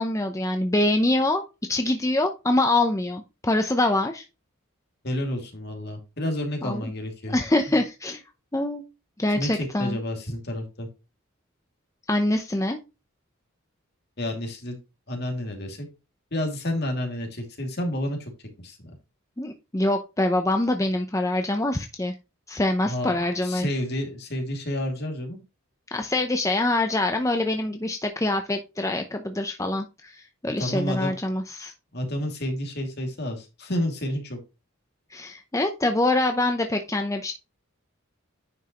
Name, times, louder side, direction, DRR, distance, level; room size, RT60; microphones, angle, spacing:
voice 1, 0.0-1.4 1.7-4.3 6.6-6.9 7.3-8.2 8.5-8.8 9.2-10.0 12.1-12.8 19.4-22.1 22.5-23.7 25.9-31.7 35.1-37.3, left 2 dB, 15° left, 6 dB, 0.7 m, -25 dB
voice 2, 5.0-7.4 7.7-7.8 9.3-10.9 14.2-14.8 15.1-15.9 16.3-18.3 18.6-18.9 22.9-23.2 23.4-25.4 30.6-31.1 31.9-34.4, left 1 dB, 50° left, 3 dB, 2.5 m, -30 dB
9.7 x 5.4 x 3.0 m, 0.27 s
head